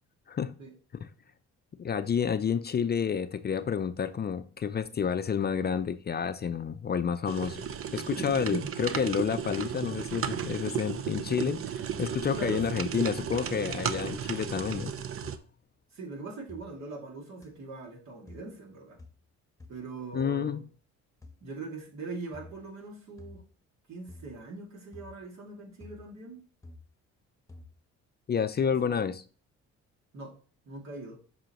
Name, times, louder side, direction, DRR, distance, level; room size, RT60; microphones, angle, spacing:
voice 1, 1.8-7.6 7.9-15.0 20.1-20.6 28.3-29.2, left 7 dB, 35° left, 11 dB, 0.5 m, -30 dB
sound 1, 7.3-15.4, right 8 dB, 45° right, 0.6 m, -34 dB
voice 2, 8.0-8.8 12.3-12.8 15.9-19.0 19.7-20.6 21.4-23.4 23.9-26.4 28.8-29.0 30.1-30.3 30.6-31.2, right 3 dB, 65° right, 1 dB, 2.3 m, -41 dB
sound 2, 13.2-13.6 13.9-14.3 14.6-14.9 15.2-15.4 16.5-16.7 17.4-17.5 18.3-18.5 19.0-19.2 19.6-19.8 20.2-20.3 21.2-21.4 22.3-22.6 23.2-23.5 24.1-24.4 24.9-25.2 25.8-26.1 26.6-26.9 27.5-27.7, left 2 dB, 10° left, 1.1 m, -49 dB
7.8 x 5.6 x 2.9 m, 0.39 s
cardioid pair, 90°, 30 cm